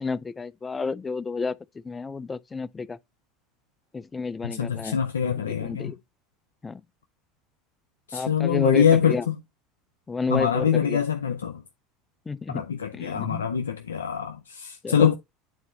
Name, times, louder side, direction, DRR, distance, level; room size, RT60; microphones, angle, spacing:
voice 1, 0.0-1.6 1.8-3.0 3.9-5.0 5.4-6.0 6.6-6.8 8.1-9.3 10.1-11.0 12.3-12.7 12.9-13.5 14.8-15.1, left 4 dB, 20° left, 0.4 m, -31 dB
voice 2, 4.4-5.9 8.1-9.3 10.3-11.6 12.5-15.1, left 7 dB, 85° left, 0.5 m, -24 dB
9.0 x 4.1 x 3.1 m
hypercardioid pair, 75°, 0 cm